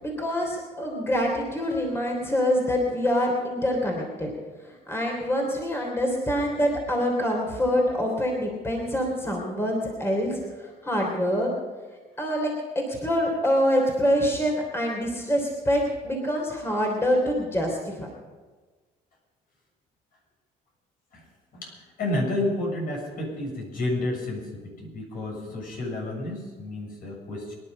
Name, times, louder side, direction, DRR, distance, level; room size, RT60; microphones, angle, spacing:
voice 1, 0.0-4.3 4.6-11.5 12.2-18.1, equal, 15° left, 0 dB, 3.3 m, -25 dB
voice 2, 21.5-27.5, left 1 dB, 55° left, -1 dB, 7.1 m, -30 dB
23.5 x 11.0 x 5.4 m, 1.3 s
cardioid pair, 110°, 17 cm